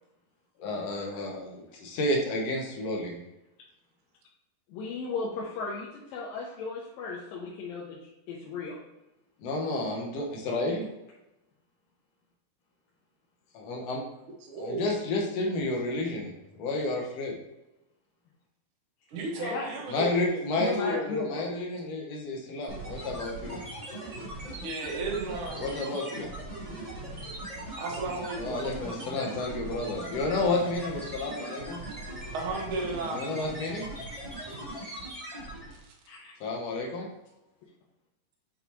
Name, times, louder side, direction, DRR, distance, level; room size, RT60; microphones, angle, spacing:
voice 1, 0.6-3.1 9.4-10.9 13.5-14.0 14.6-16.3 16.6-17.3 19.9-23.6 25.6-26.3 28.4-31.8 33.1-33.9 36.4-37.1, left 2 dB, 60° left, -1 dB, 1.8 m, -31 dB
voice 2, 4.7-8.0 8.3-8.8 19.3-19.7 20.7-21.5 31.3-31.4 36.1-36.2, left 4 dB, 80° left, -4 dB, 2.6 m, -35 dB
voice 3, 14.4-15.0 19.1-21.0 24.6-25.7 27.8-28.6 31.8-33.3 35.8-35.9, right 3 dB, 75° right, 0 dB, 1.2 m, -34 dB
sound 1, 22.7-35.8, right 1 dB, 55° right, 0.4 m, -40 dB
8.3 x 4.2 x 2.8 m, 0.97 s
omnidirectional pair, 4.1 m